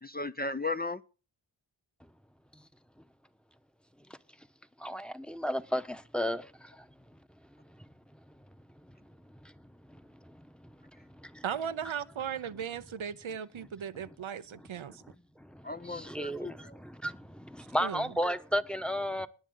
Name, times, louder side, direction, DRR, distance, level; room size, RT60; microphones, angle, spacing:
voice 1, 0.0-1.0 15.6-16.8, left 3 dB, 20° left, 0.6 m, -36 dB
voice 2, 4.8-5.8 6.1-6.4 16.1-16.5 17.0-17.1 17.7-19.3, equal, ahead, 1.0 m, -31 dB
voice 3, 11.4-15.0 17.8-18.1, right 8 dB, 75° right, 0.7 m, -37 dB
21.0 x 7.3 x 3.8 m
cardioid pair, 40°, 48 cm